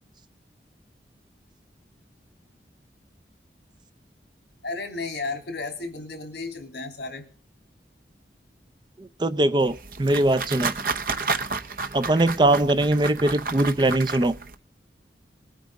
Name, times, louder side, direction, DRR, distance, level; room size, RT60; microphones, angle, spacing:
voice 1, 4.6-7.3 12.4-12.5, left 3 dB, 70° left, 3.2 m, -33 dB
voice 2, 9.0-10.8 11.9-14.3, right 1 dB, 25° right, 0.5 m, -21 dB
sound 1, 9.6-14.5, right 4 dB, 50° right, 0.8 m, -31 dB
20.0 x 9.2 x 3.6 m
head